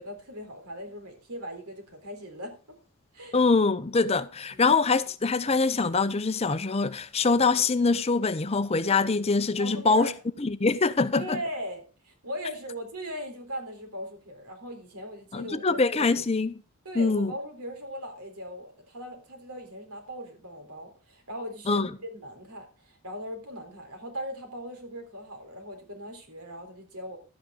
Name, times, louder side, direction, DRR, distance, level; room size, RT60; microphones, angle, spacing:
voice 1, 0.0-2.8 3.1-3.4 4.5-4.7 9.6-10.1 11.2-16.2 16.8-27.2, equal, 90° right, 3.7 m, -39 dB
voice 2, 3.3-10.1 10.4-11.4 15.3-16.6 17.0-17.3 21.7-21.9, left 4 dB, 25° left, 0.6 m, -24 dB
12.0 x 9.2 x 3.8 m
head